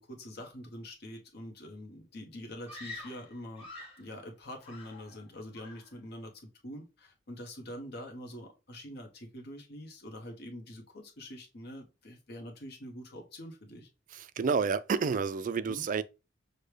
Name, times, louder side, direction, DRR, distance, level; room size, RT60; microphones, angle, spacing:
voice 1, 0.0-3.7 4.0-6.3 6.6-13.9 15.7-15.8, equal, 60° left, 1.0 m, -45 dB
Screaming, 2.7-4.1 4.6-5.3 5.5-6.0, left 2 dB, 30° left, 1.7 m, -47 dB
voice 2, 14.1-16.0, right 5 dB, 45° right, 0.3 m, -30 dB
6.4 x 2.2 x 3.2 m
head